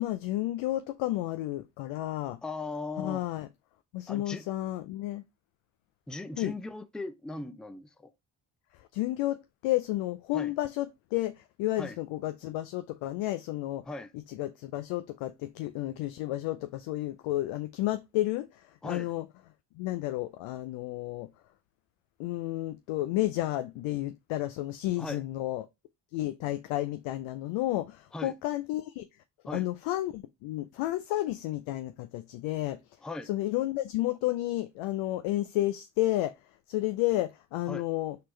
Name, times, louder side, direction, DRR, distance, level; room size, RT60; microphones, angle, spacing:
voice 1, 0.0-2.4 3.0-3.5 3.9-5.2 6.4-6.5 8.8-9.4 9.6-13.8 14.3-19.3 19.8-21.3 22.2-25.7 26.1-29.0 29.5-32.8 33.2-36.3 36.7-38.2, left 15 dB, 70° left, 0.5 m, -31 dB
voice 2, 2.4-3.3 4.1-4.5 6.1-8.1 10.3-10.5 11.8-12.0 13.9-14.1 18.8-19.1 25.0-25.2 28.1-28.3 29.5-29.7 33.0-33.3 37.7-37.8, left 2 dB, ahead, 0.3 m, -38 dB
4.2 x 3.3 x 3.1 m
hypercardioid pair, 55°, 50 cm